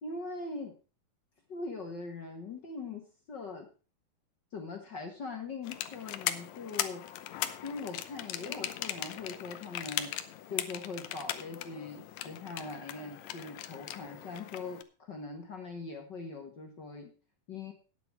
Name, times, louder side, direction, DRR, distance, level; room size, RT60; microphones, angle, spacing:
voice 1, 0.0-0.7 1.5-3.7 4.5-7.0 7.6-10.1 10.5-17.1 17.5-17.7, left 3 dB, 45° left, 3 dB, 1.5 m, -41 dB
sound 1, 5.6-14.8, left 12 dB, 75° left, 1.7 m, -39 dB
9.7 x 8.2 x 5.9 m, 0.36 s
omnidirectional pair, 4.0 m